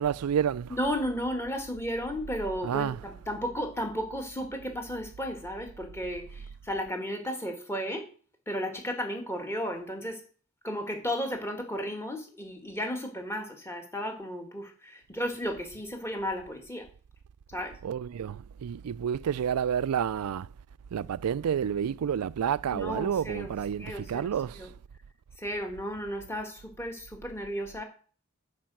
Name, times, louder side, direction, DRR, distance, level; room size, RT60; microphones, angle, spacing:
voice 1, 0.0-0.8 2.6-3.0 17.8-20.5 20.9-24.7, right 8 dB, 90° right, 0.4 m, -29 dB
voice 2, 0.7-8.1 8.5-10.2 10.6-16.9 17.5-17.8 22.7-23.5 23.8-24.7 25.4-27.8, equal, 10° left, 1.9 m, -34 dB
10.5 x 5.0 x 7.7 m
head